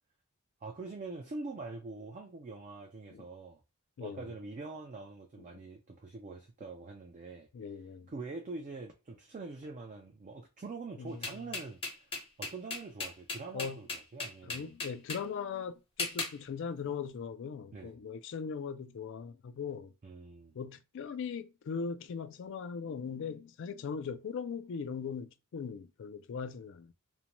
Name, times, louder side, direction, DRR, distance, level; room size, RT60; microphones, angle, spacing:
voice 1, 0.6-3.6 4.0-7.5 8.1-12.1 12.4-14.7 17.7-17.9 20.0-20.6, right 3 dB, 35° right, 0.3 m, -44 dB
voice 2, 7.5-8.1 11.0-11.3 13.5-13.8 14.4-19.9 20.5-26.9, left 6 dB, 55° left, 0.3 m, -39 dB
sound 1, 11.2-15.2 16.0-16.4, left 3 dB, 25° left, 0.6 m, -37 dB
2.6 x 2.1 x 2.9 m
head